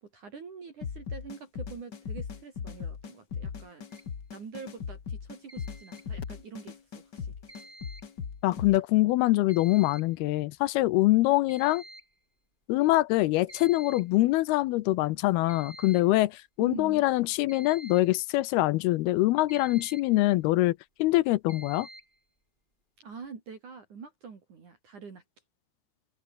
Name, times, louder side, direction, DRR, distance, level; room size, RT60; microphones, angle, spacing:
voice 1, 0.0-3.9 4.3-7.3 16.6-17.0 23.0-25.2, right 5 dB, 45° right, 4.9 m, -45 dB
sound 1, 0.8-8.8, left 6 dB, 50° left, 1.3 m, -38 dB
sound 2, 3.9-4.1 5.5-6.1 7.5-8.1 9.5-10.1 10.4-10.5 11.0-11.1 11.5-12.1 13.5-14.1 15.5-16.2 17.5-18.2 19.5-20.2 21.5-22.2, right 1 dB, 10° right, 4.8 m, -48 dB
voice 2, 8.4-11.8 12.7-21.9, left 18 dB, 80° left, 2.5 m, -24 dB
open air
omnidirectional pair, 4.9 m